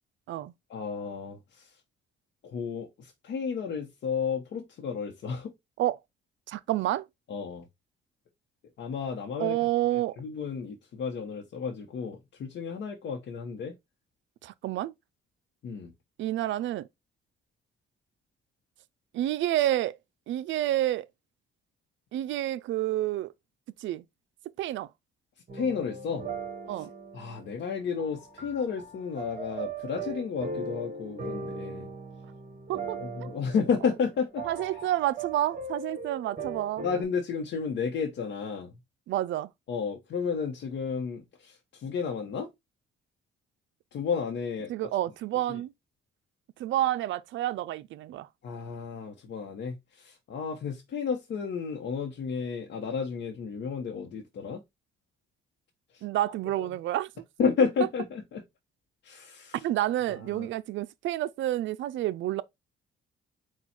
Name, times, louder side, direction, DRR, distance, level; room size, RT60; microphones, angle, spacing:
voice 1, 0.7-1.7 2.4-5.5 7.3-7.6 8.8-9.6 10.2-13.7 15.6-15.9 25.5-26.3 27.1-31.9 33.0-34.4 36.8-38.7 39.7-42.5 43.9-44.7 45.5-45.6 48.4-54.6 55.9-56.0 56.6-56.7 57.4-58.4 59.0-59.6 60.3-60.5, left 6 dB, 65° left, 0.9 m, -32 dB
voice 2, 6.5-7.0 9.4-10.2 14.4-14.9 16.2-16.9 19.1-20.0 20.3-21.1 22.1-23.3 23.8-24.0 24.6-24.9 26.7-26.9 32.7-33.3 34.4-36.9 39.1-39.5 44.7-45.7 46.6-48.3 56.0-57.1 59.6-62.4, right 14 dB, 70° right, 0.4 m, -29 dB
sound 1, 25.5-37.0, right 3 dB, 40° right, 1.3 m, -39 dB
4.3 x 2.3 x 4.2 m
cardioid pair, 90°, 20 cm